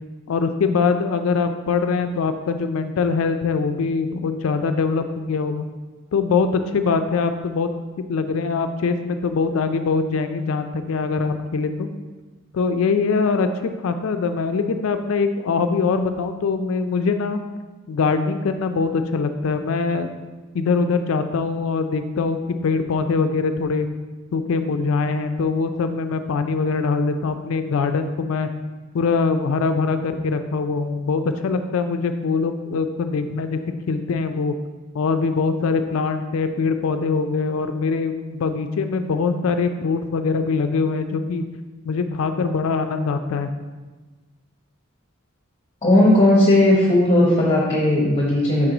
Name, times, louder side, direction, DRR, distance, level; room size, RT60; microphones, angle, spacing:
voice 1, 0.3-5.7 6.1-6.5 6.7-7.7 8.0-11.9 12.5-17.4 17.9-20.1 20.5-23.9 24.3-28.5 28.9-33.6 33.9-34.5 34.9-41.4 41.9-43.5, left 4 dB, 70° left, 8 dB, 0.4 m, -23 dB
voice 2, 45.8-48.7, left 1 dB, 25° left, -3 dB, 0.9 m, -16 dB
5.9 x 4.6 x 3.8 m, 1.3 s
head